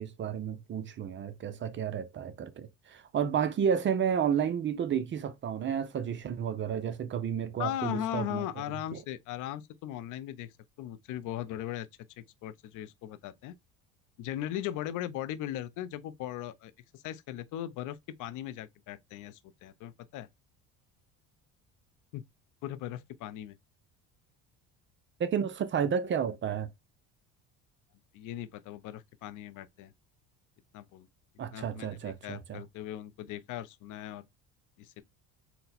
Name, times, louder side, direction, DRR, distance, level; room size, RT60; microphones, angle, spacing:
voice 1, 0.0-8.4 8.9-9.0 25.2-26.7 31.4-32.6, right 8 dB, 35° right, 0.5 m, -31 dB
voice 2, 7.6-11.9 12.4-13.5 14.2-20.3 22.1-22.2 22.6-23.6 28.1-29.9 30.7-31.1 31.5-34.2 34.8-35.0, left 12 dB, 60° left, 0.6 m, -38 dB
4.1 x 2.1 x 4.1 m
cardioid pair, 110°, 34 cm